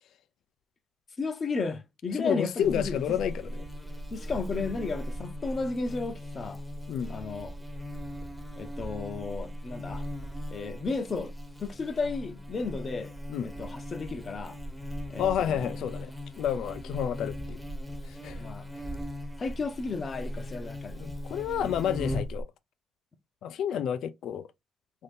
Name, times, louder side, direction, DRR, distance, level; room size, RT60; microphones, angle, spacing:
voice 1, 1.2-3.2 4.1-6.6 7.1-7.6 8.6-10.1 10.5-11.3 11.6-13.1 13.4-14.6 15.1-15.8 18.3-18.7 19.4-21.1, left 4 dB, 40° left, 0.7 m, -34 dB
voice 2, 2.1-3.6 6.9-7.2 13.3-13.5 15.2-16.1 16.4-17.6 18.0-18.5 20.9-22.5 23.4-24.5, left 9 dB, 75° left, 0.4 m, -30 dB
Buzz, 2.6-22.4, equal, ahead, 0.9 m, -38 dB
2.7 x 2.6 x 3.4 m
cardioid pair, 90°, 0 cm